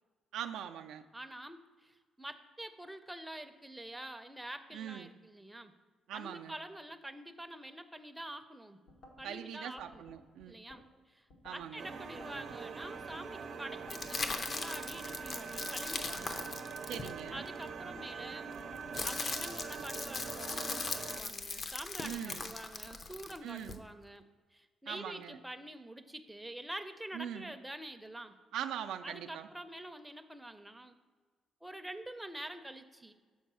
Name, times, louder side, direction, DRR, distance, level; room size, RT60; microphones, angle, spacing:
voice 1, 0.3-1.0 4.7-5.1 6.1-6.5 9.2-10.6 11.4-11.8 16.9-17.5 22.0-22.4 23.4-23.8 24.9-25.4 27.1-27.5 28.5-29.5, right 9 dB, 85° right, 7 dB, 0.3 m, -42 dB
voice 2, 1.1-5.7 6.1-8.8 9.2-10.0 10.5-16.3 17.3-18.5 19.0-24.2 24.5-28.4 29.0-30.9 31.6-33.1, right 1 dB, 5° right, 7 dB, 0.5 m, -46 dB
sound 1, 8.9-9.3 9.8-10.8 11.3-11.7 12.2-13.3 13.7-14.1 14.6-15.7 16.1-16.6 17.0-18.1 18.6-19.0 19.5-19.9, left 1 dB, 85° left, 1.2 m, -56 dB
sound 2, 11.8-21.2, right 5 dB, 65° right, 0.7 m, -44 dB
sound 3, 13.9-17.6 18.5-23.8, left 4 dB, 45° left, 0.6 m, -39 dB
5.5 x 4.2 x 6.1 m, 1.5 s
cardioid pair, 90°, 0 cm